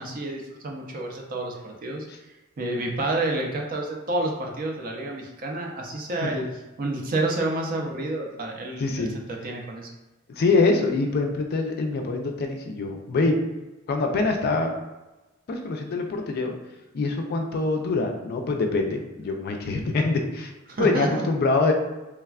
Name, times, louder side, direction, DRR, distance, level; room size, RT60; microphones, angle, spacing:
voice 1, 0.0-2.1 2.6-6.5 6.8-9.9 20.7-21.2, right 2 dB, 45° right, 1 dB, 0.4 m, -29 dB
voice 2, 8.8-9.1 10.4-13.4 13.9-14.7 15.5-16.5 16.9-20.5 20.8-21.7, left 3 dB, 50° left, 3 dB, 0.3 m, -24 dB
3.3 x 2.1 x 2.3 m, 1.1 s
head